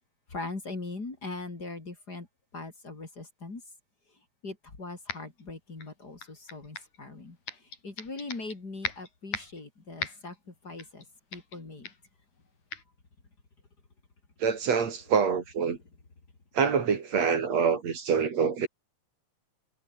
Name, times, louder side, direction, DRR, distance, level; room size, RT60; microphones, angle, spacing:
voice 1, 0.3-2.3 2.5-3.6 4.4-7.4 7.8-11.0 11.3-11.9, left 3 dB, 30° left, 4.0 m, -40 dB
sound 1, 5.1-5.4 5.8-7.0 7.5-8.6 8.8-9.6 10.0-10.4 10.8-11.0 11.3-11.6 11.8-12.1 12.7-12.8, left 5 dB, 75° left, 5.7 m, -38 dB
voice 2, 14.4-15.8 16.6-18.7, right 6 dB, 60° right, 3.6 m, -26 dB
omnidirectional pair, 3.5 m